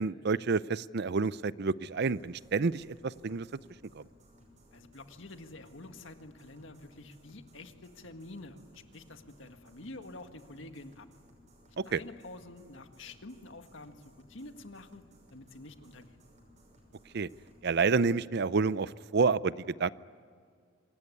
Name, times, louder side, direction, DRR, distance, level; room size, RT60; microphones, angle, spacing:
voice 1, 0.0-3.5 3.9-4.0 11.8-12.0 17.1-17.3 17.6-19.9, right 4 dB, 55° right, 18 dB, 0.5 m, -29 dB
sound 1, 1.9-18.0, equal, 40° right, 6.2 m, -60 dB
voice 2, 4.7-11.1 11.7-16.2, left 2 dB, 70° left, 7 dB, 1.8 m, -48 dB
25.5 x 19.5 x 9.7 m, 2.1 s
head